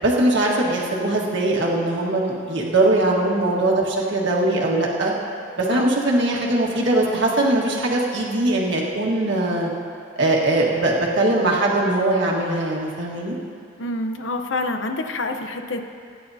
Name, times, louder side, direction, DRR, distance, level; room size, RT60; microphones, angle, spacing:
voice 1, 0.0-5.1 5.6-9.7 10.1-13.4, right 2 dB, 60° right, -3 dB, 1.6 m, -21 dB
voice 2, 13.8-15.8, left 2 dB, 70° left, 5 dB, 0.8 m, -27 dB
23.5 x 10.5 x 2.8 m, 2.5 s
head